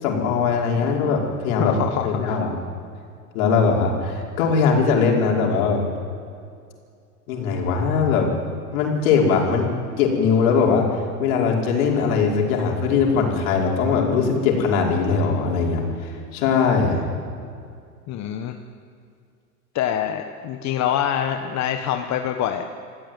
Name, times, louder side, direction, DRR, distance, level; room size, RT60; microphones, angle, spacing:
voice 1, 0.0-1.8 2.0-2.5 3.3-5.9 7.3-8.3 8.7-9.7 10.0-17.0, left 5 dB, 60° left, 0 dB, 5.5 m, -20 dB
voice 2, 1.6-2.4 18.1-18.6 19.7-22.7, left 10 dB, 35° left, 6 dB, 1.4 m, -25 dB
26.0 x 15.5 x 9.4 m, 2.3 s
hypercardioid pair, 105°, 46 cm